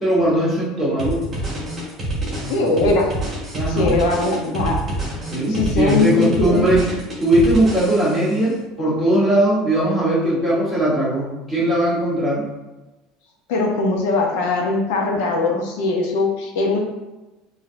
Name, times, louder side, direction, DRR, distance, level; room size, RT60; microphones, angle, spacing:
voice 1, 0.0-1.2 3.5-3.9 5.3-6.8 7.2-12.4, right 1 dB, 10° left, -8 dB, 1.2 m, -19 dB
sound 1, 1.0-8.3, right 1 dB, 20° right, 1.1 m, -27 dB
voice 2, 2.5-3.1 3.7-4.8 5.5-6.7 13.5-16.8, left 3 dB, 80° left, 1 dB, 0.7 m, -20 dB
4.9 x 2.7 x 2.5 m, 1.1 s
cardioid pair, 170°, 0 cm